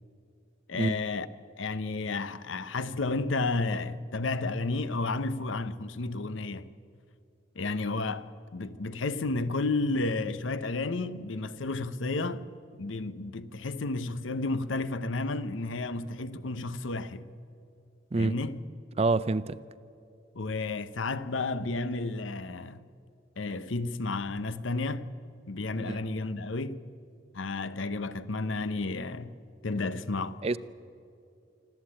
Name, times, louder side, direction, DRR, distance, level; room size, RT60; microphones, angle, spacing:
voice 1, 0.7-1.3 1.6-6.7 7.5-12.5 12.8-17.3 18.2-18.6 20.3-22.8 23.4-25.1 25.5-26.8 27.3-29.3 29.6-30.4, left 3 dB, 75° left, 0.8 m, -32 dB
voice 2, 19.0-19.6 25.8-26.0 30.4-30.6, right 3 dB, 30° right, 0.4 m, -27 dB
26.0 x 13.0 x 8.7 m
head